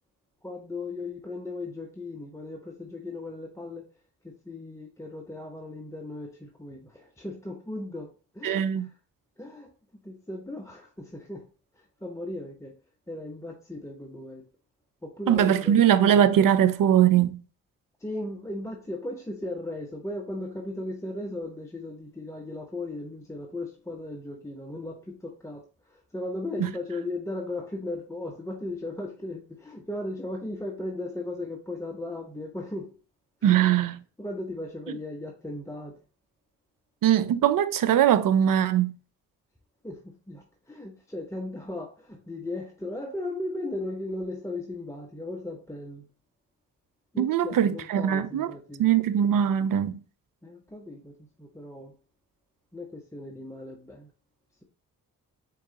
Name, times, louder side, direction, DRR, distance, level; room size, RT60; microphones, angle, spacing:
voice 1, 0.4-3.8 4.2-8.9 9.4-11.5 11.8-12.8 13.1-14.4 15.0-15.8 18.0-33.0 33.4-33.7 34.2-36.0 39.8-46.1 47.1-49.0 50.4-52.0 52.7-54.1, left 2 dB, 5° left, 0.8 m, -37 dB
voice 2, 8.4-8.9 15.3-17.4 26.6-26.7 33.4-34.0 37.0-38.9 47.2-48.5 48.8-50.0, right 10 dB, 55° right, 0.6 m, -21 dB
4.5 x 3.7 x 2.9 m
hypercardioid pair, 40°, 39 cm